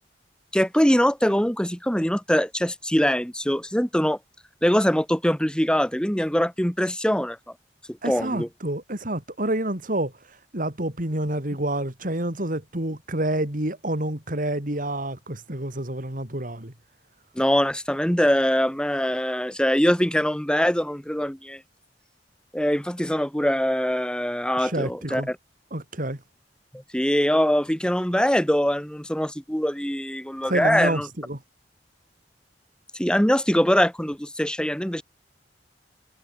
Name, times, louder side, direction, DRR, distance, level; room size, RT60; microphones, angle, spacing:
voice 1, 0.5-4.2 4.6-7.4 8.0-8.5 17.4-21.6 22.5-25.4 26.7-31.1 33.0-35.0, equal, 5° left, 2.5 m, -23 dB
voice 2, 8.0-16.7 24.6-25.3 25.7-26.2 30.4-31.4, right 1 dB, 50° right, 3.7 m, -28 dB
head